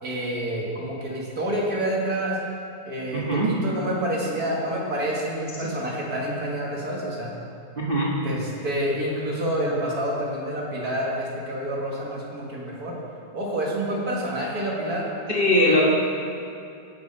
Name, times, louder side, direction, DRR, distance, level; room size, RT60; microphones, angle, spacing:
voice 1, 0.0-2.4 2.8-7.3 8.2-12.9 13.3-15.1 15.6-15.8, right 1 dB, 40° right, -4 dB, 1.7 m, -28 dB
voice 2, 3.1-3.5 5.6-5.7 7.8-8.1 15.3-15.8, left 1 dB, 85° right, -5 dB, 0.4 m, -21 dB
16.5 x 6.4 x 5.4 m, 2.6 s
omnidirectional pair, 3.3 m